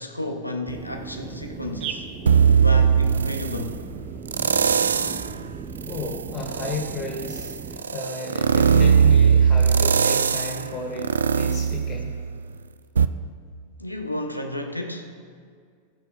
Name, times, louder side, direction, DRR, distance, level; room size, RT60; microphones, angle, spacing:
voice 1, 0.0-2.1 2.6-3.8 13.8-15.2, left 1 dB, 90° left, 5 dB, 0.8 m, -32 dB
sound 1, 0.7-7.8, right 6 dB, 35° right, 0.8 m, -36 dB
sound 2, 2.3-3.7 4.3-5.3 5.8-12.5 13.0-13.1, right 6 dB, 70° right, 0.3 m, -20 dB
voice 2, 5.9-12.1, left 3 dB, 25° left, -1 dB, 2.5 m, -33 dB
18.0 x 6.5 x 3.5 m, 2.1 s
figure-of-eight pair, 90°, 0 cm